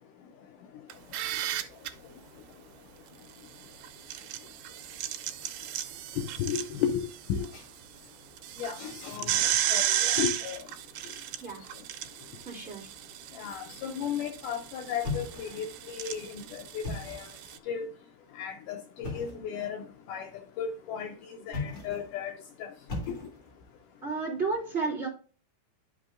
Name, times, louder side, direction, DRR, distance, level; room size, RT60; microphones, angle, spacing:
sound 1, 0.9-1.9 3.8-7.5 7.8-7.9 8.4-17.6, right 11 dB, 85° right, 2.4 m, -33 dB
voice 1, 6.2-7.5 8.6-10.6 13.4-17.3 17.7-17.9 18.4-20.3 20.6-21.2 21.5-22.7 23.1-23.2, left 8 dB, 80° left, 5 dB, 2.0 m, -34 dB
voice 2, 12.4-12.9 24.0-25.1, right 4 dB, 25° right, -4 dB, 1.9 m, -32 dB
sound 2, 15.0-15.8 16.7-17.4 19.0-19.5 21.4-22.1 22.9-23.6, left 3 dB, 30° left, 2.5 m, -37 dB
11.0 x 5.4 x 2.5 m, 0.37 s
omnidirectional pair, 4.1 m